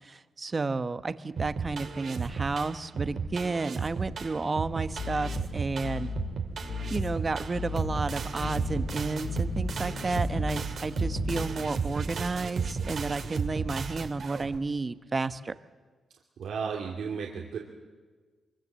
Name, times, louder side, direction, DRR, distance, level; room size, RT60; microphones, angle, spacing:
voice 1, 0.0-6.1 6.9-15.5, right 3 dB, 35° right, 12 dB, 1.1 m, -32 dB
sound 1, 1.4-14.6, right 5 dB, 65° right, 2.5 m, -34 dB
sound 2, 5.0-11.8, left 4 dB, 70° left, 3.4 m, -36 dB
voice 2, 16.4-17.6, right 6 dB, 85° right, -1 dB, 2.8 m, -34 dB
23.5 x 23.0 x 7.6 m, 1.4 s
cardioid pair, 90°, 0 cm